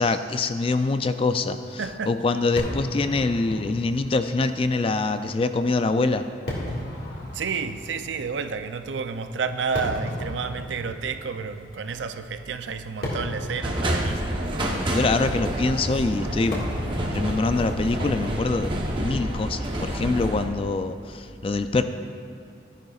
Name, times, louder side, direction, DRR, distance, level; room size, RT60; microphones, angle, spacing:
voice 1, 0.0-1.8 2.1-6.2 14.9-21.8, left 3 dB, 30° left, 10 dB, 0.3 m, -24 dB
voice 2, 1.8-2.2 7.3-14.6, right 5 dB, 75° right, 9 dB, 0.5 m, -30 dB
Fireworks, 2.6-19.9, left 1 dB, 55° left, 1.9 m, -37 dB
sound 1, 13.6-20.5, equal, 25° right, 0.9 m, -28 dB
13.5 x 10.5 x 2.4 m, 2.6 s
head